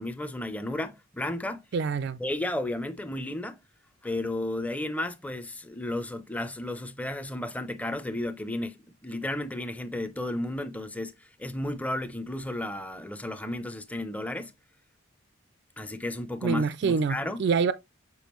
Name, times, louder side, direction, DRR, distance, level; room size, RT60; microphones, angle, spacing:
voice 1, 0.0-1.6 2.2-3.6 4.0-14.5 15.8-17.4, left 1 dB, 5° left, 0.5 m, -33 dB
voice 2, 1.7-2.2 16.4-17.7, right 5 dB, 50° right, 0.3 m, -26 dB
7.0 x 4.8 x 3.0 m
head